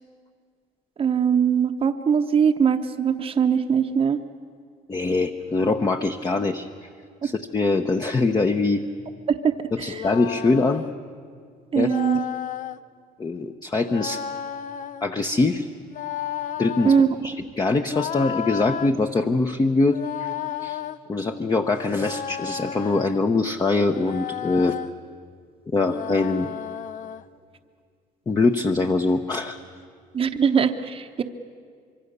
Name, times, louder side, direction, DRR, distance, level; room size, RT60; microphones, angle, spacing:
voice 1, 1.0-4.2 7.2-7.3 9.3-10.0 11.7-12.2 16.8-17.1 30.1-31.2, right 7 dB, 35° right, 6 dB, 0.9 m, -21 dB
voice 2, 4.9-6.7 7.2-8.8 9.7-10.8 11.7-11.9 13.2-14.2 15.0-15.7 16.6-16.9 17.2-20.3 20.6-20.8 21.1-24.8 25.7-26.5 28.3-29.6, left 3 dB, 20° left, 5 dB, 0.9 m, -23 dB
sound 1, 9.8-10.9 11.8-12.8 13.8-15.1 15.8-17.1 17.9-18.9 19.8-21.0 21.8-23.2 23.8-24.9 25.8-27.2, left 9 dB, 50° left, 0.7 m, -33 dB
25.5 x 23.0 x 6.8 m, 2.1 s
cardioid pair, 110°, 17 cm